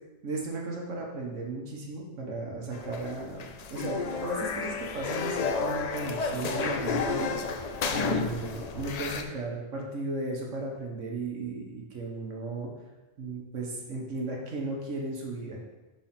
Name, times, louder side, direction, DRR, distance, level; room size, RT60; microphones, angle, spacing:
voice 1, 0.2-12.7 13.2-15.6, right 2 dB, 70° right, -1 dB, 1.4 m, -35 dB
sound 1, 2.7-9.2, left 4 dB, 85° left, 0.3 m, -31 dB
5.8 x 3.9 x 5.8 m, 1.1 s
omnidirectional pair, 1.3 m